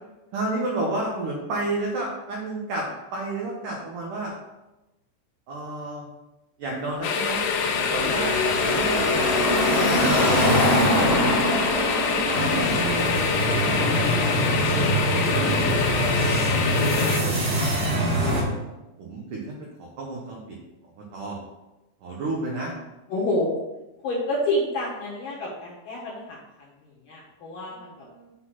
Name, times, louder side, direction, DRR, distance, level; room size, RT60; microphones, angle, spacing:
voice 1, 0.3-2.9 3.1-4.3 5.5-6.1 6.6-7.4 7.9-8.4 8.6-10.6 12.0-14.0 14.8-16.4 17.2-17.7 18.0-18.2 19.0-19.5 19.8-20.6 21.0-21.4 22.0-22.7 27.8-28.3, right 2 dB, 85° right, -2 dB, 1.8 m, -32 dB
sound 1, 7.0-17.2, left 6 dB, 85° left, 3.4 m, -25 dB
Car passing by / Traffic noise roadway noise, 7.2-14.1, equal, 25° left, 1.4 m, -24 dB
sound 2, 12.3-18.4, right 1 dB, 40° right, 2.0 m, -24 dB
voice 2, 23.1-23.5 24.0-27.9, left 1 dB, 65° left, -5 dB, 2.3 m, -28 dB
8.7 x 4.1 x 5.9 m, 1.0 s
omnidirectional pair, 5.6 m